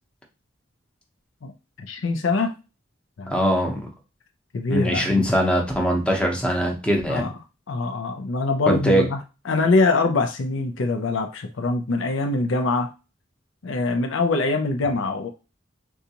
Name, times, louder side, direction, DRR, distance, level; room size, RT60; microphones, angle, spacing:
voice 1, 1.8-2.5 3.2-3.4 4.5-5.3 7.1-7.3 7.7-12.9 13.6-15.3, left 3 dB, 75° left, 4 dB, 0.5 m, -23 dB
voice 2, 3.3-3.8 4.7-7.3 8.7-9.0, equal, 5° left, 0 dB, 0.7 m, -21 dB
3.8 x 2.3 x 2.8 m, 0.30 s
head